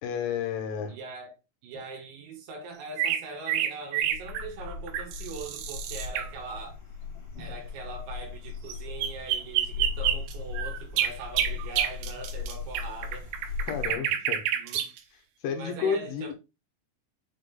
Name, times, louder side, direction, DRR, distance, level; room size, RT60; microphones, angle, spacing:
voice 1, 0.0-1.0 13.7-14.5 15.4-16.3, left 7 dB, 75° left, 3.4 m, -31 dB
voice 2, 0.9-1.3 1.6-6.8 7.4-13.5 14.5-14.9 15.5-16.3, right 3 dB, 70° right, 3.8 m, -41 dB
sound 1, 3.0-6.3 8.7-8.8 9.0-15.0, right 10 dB, 85° right, 3.7 m, -28 dB
sound 2, 4.0-13.9, left 5 dB, 40° left, 2.4 m, -38 dB
8.2 x 3.8 x 3.8 m
omnidirectional pair, 5.8 m